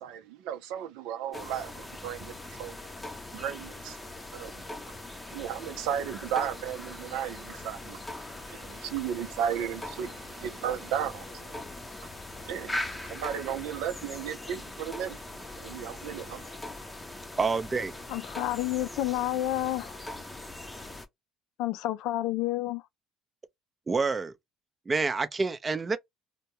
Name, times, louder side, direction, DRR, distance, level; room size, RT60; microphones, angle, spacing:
voice 1, 0.0-2.8 3.3-4.0 4.3-4.6 5.3-16.6, right 9 dB, 85° right, 0.6 m, -35 dB
sound 1, 1.3-21.1, left 2 dB, 15° left, 0.7 m, -41 dB
voice 2, 17.4-18.0 23.9-24.3 24.9-26.0, right 4 dB, 25° right, 0.6 m, -27 dB
voice 3, 18.1-20.0 21.6-22.8, left 15 dB, 75° left, 0.3 m, -30 dB
2.3 x 2.2 x 2.7 m
supercardioid pair, 95°, 0 cm